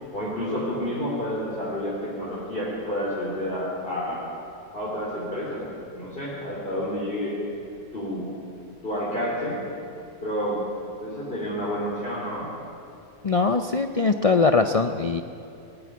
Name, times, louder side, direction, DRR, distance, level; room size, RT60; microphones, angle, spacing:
voice 1, 0.1-4.2 4.7-5.6 5.9-7.3 7.9-8.3 8.8-9.6 10.2-10.6 11.0-12.5, equal, 35° left, -7 dB, 4.1 m, -29 dB
voice 2, 13.2-15.2, left 4 dB, 55° left, 7 dB, 0.4 m, -21 dB
19.5 x 14.5 x 9.4 m, 2.6 s
omnidirectional pair, 1.6 m